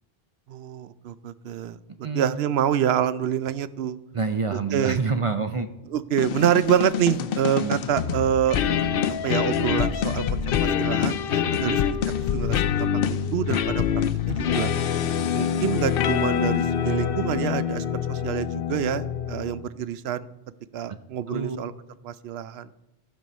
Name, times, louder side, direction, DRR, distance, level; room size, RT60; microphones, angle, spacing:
voice 1, 0.5-4.0 4.5-5.0 5.9-8.6 9.2-11.8 12.2-13.8 14.3-14.7 15.3-20.3 20.7-21.7 22.0-22.7, right 9 dB, 80° right, 15 dB, 0.8 m, -26 dB
voice 2, 2.0-2.4 4.1-5.7 7.6-7.8 11.5-11.8 21.3-21.6, right 4 dB, 45° right, 8 dB, 0.5 m, -27 dB
sound 1, 6.2-19.7, left 8 dB, 65° left, 0.7 m, -25 dB
14.0 x 5.4 x 5.3 m, 0.90 s
omnidirectional pair, 1.0 m